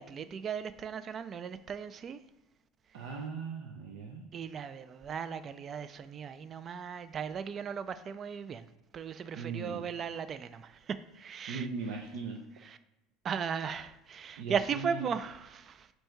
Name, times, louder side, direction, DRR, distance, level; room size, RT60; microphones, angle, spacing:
voice 1, 0.0-2.2 4.3-8.7 8.9-11.7 12.6-12.8 13.2-15.9, right 7 dB, 35° right, 12 dB, 0.3 m, -37 dB
voice 2, 2.9-4.3 9.3-9.8 11.5-12.4 14.4-15.1, right 5 dB, 80° right, 0 dB, 0.7 m, -38 dB
4.5 x 2.7 x 4.4 m, 0.94 s
supercardioid pair, 115°, 0 cm